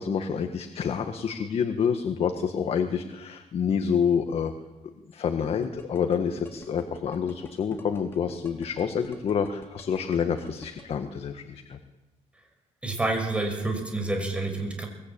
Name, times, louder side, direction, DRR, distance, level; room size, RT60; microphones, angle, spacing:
voice 1, 0.0-4.5 5.1-11.8, left 7 dB, 50° left, 7 dB, 1.6 m, -28 dB
sound 1, 5.6-10.8, left 3 dB, 20° left, 3.6 m, -46 dB
voice 2, 12.8-14.9, right 2 dB, 10° right, 4 dB, 5.9 m, -28 dB
23.0 x 21.0 x 8.8 m, 1.1 s
cardioid pair, 135°, 13 cm